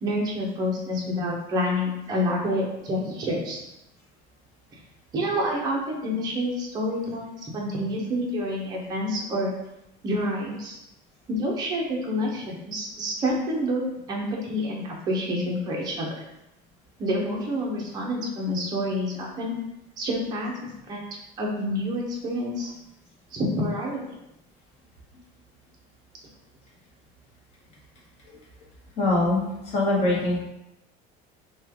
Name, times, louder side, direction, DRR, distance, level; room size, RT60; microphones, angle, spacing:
voice 1, 0.0-3.6 5.1-9.5 10.0-10.7 11.3-16.1 17.0-19.5 20.0-21.0 21.4-22.7 23.3-24.1, equal, 20° right, -2 dB, 0.6 m, -28 dB
voice 2, 29.0-30.4, left 2 dB, 35° left, -4 dB, 0.8 m, -23 dB
3.1 x 2.2 x 3.4 m, 0.88 s
cardioid pair, 180°, 19 cm